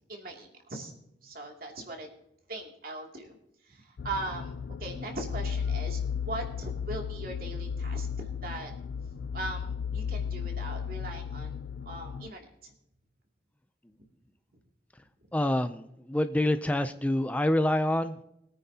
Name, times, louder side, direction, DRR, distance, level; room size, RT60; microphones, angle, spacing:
voice 1, 0.1-0.9 1.2-2.1 2.5-3.4 3.6-8.7 9.3-12.7, right 2 dB, 55° right, 1 dB, 2.7 m, -40 dB
sound 1, 4.0-12.3, left 6 dB, 80° left, 0.4 m, -34 dB
voice 2, 15.3-18.2, left 1 dB, 10° left, 9 dB, 0.4 m, -27 dB
22.0 x 9.5 x 2.8 m, 0.82 s
head